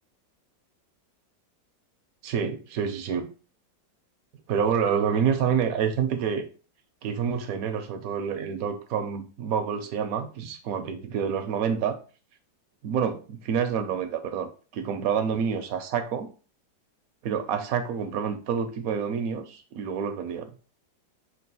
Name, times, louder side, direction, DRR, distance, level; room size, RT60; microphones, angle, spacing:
voice 1, 2.2-3.3 4.5-6.4 7.0-12.0 12.8-16.3 17.2-20.5, right 7 dB, 70° right, 0.8 m, -28 dB
5.4 x 2.5 x 3.9 m
omnidirectional pair, 2.0 m